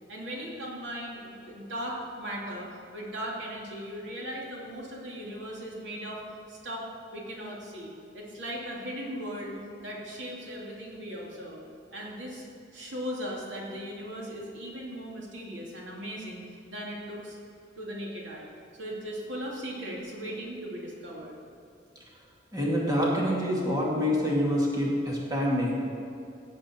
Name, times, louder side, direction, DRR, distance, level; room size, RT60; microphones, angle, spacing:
voice 1, 0.1-6.2 6.5-6.8 7.1-11.6 11.9-12.4 12.7-17.4 17.8-18.5 18.8-21.4, equal, 85° right, -3 dB, 2.5 m, -38 dB
voice 2, 22.5-25.7, equal, 20° right, -4 dB, 2.3 m, -26 dB
17.0 x 7.8 x 4.4 m, 2.6 s
head